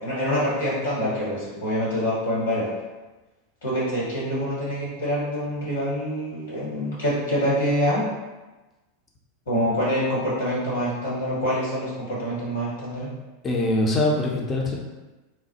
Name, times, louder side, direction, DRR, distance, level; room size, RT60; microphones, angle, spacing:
voice 1, 0.0-2.7 3.6-8.1 9.4-13.1, equal, 70° left, -7 dB, 1.4 m, -25 dB
voice 2, 13.4-14.8, left 1 dB, 25° left, -2 dB, 0.6 m, -23 dB
3.2 x 2.1 x 2.8 m, 1.1 s
figure-of-eight pair, 90°, 0 cm